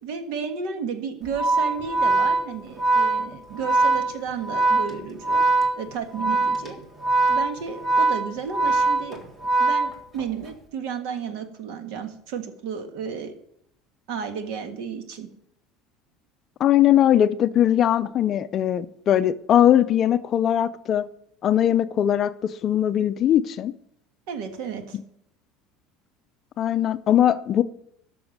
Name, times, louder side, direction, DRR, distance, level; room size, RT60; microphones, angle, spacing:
voice 1, 0.0-5.4 5.8-6.8 7.3-9.2 9.6-13.3 14.1-15.3 24.3-25.0, right 6 dB, 70° right, 1.6 m, -33 dB
Organ, 1.3-10.4, right 3 dB, 10° right, 1.7 m, -22 dB
voice 2, 16.6-21.0 21.4-23.7 26.6-27.6, left 11 dB, 35° left, 0.4 m, -20 dB
12.0 x 6.2 x 6.5 m
cardioid pair, 155°, 0 cm